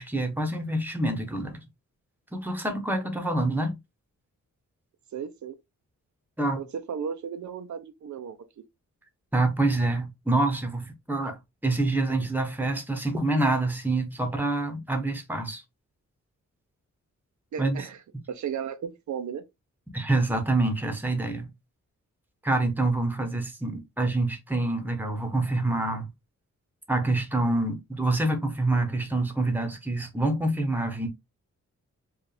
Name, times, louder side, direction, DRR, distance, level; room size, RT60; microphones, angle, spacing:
voice 1, 0.0-1.6 2.3-3.7 6.4-6.6 9.3-11.4 11.6-15.6 17.6-17.8 19.9-21.5 22.4-26.0 26.9-31.1, right 2 dB, 5° right, 0.9 m, -26 dB
voice 2, 5.1-5.6 6.6-8.4 17.5-18.0 18.3-19.4, right 7 dB, 65° right, 0.6 m, -34 dB
4.6 x 2.4 x 3.3 m
wide cardioid pair, 145°, 31 cm